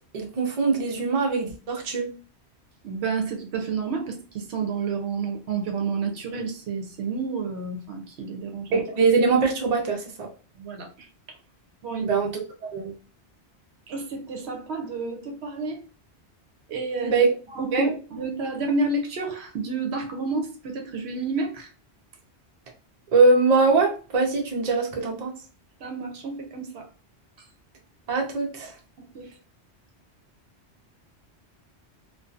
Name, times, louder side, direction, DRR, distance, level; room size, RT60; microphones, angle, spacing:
voice 1, 0.1-2.1 8.7-10.3 12.0-12.3 12.7-12.9 17.0-17.3 17.7-18.0 23.1-25.3 28.1-28.7, right 4 dB, 45° right, 0.7 m, -22 dB
voice 2, 2.8-8.8 10.6-11.1 11.8-12.1 13.9-15.8 16.7-17.2 17.5-21.7 25.8-26.9 29.0-29.3, right 4 dB, 75° right, 0.9 m, -30 dB
2.6 x 2.3 x 2.4 m
omnidirectional pair, 1.1 m